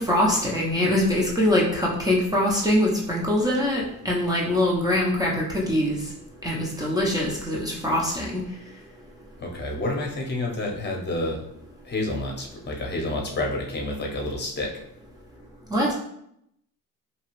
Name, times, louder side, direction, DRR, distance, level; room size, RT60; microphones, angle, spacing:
voice 1, 0.0-6.0 6.4-8.4 15.7-15.9, left 1 dB, 10° right, -4 dB, 0.7 m, -23 dB
voice 2, 9.4-11.5 11.8-14.7, left 2 dB, 30° left, 0 dB, 0.9 m, -29 dB
2.9 x 2.3 x 3.0 m, 0.75 s
cardioid pair, 85°, 34 cm